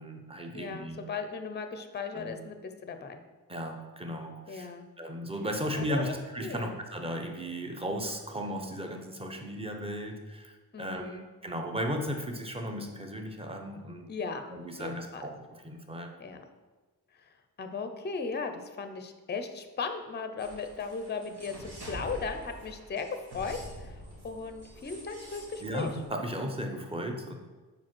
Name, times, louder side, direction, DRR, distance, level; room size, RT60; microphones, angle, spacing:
voice 1, 0.0-1.0 2.1-2.3 3.5-14.1 14.5-16.1 25.6-27.3, equal, 15° right, 3 dB, 0.7 m, -36 dB
voice 2, 0.5-3.2 4.5-4.9 5.7-6.8 10.7-11.2 14.1-14.5 14.8-15.3 16.2-16.4 17.6-25.9, left 4 dB, 25° left, 8 dB, 0.5 m, -37 dB
sound 1, 20.4-26.1, right 1 dB, 75° right, 1.8 m, -46 dB
5.1 x 4.4 x 6.0 m, 1.3 s
wide cardioid pair, 145°, 39 cm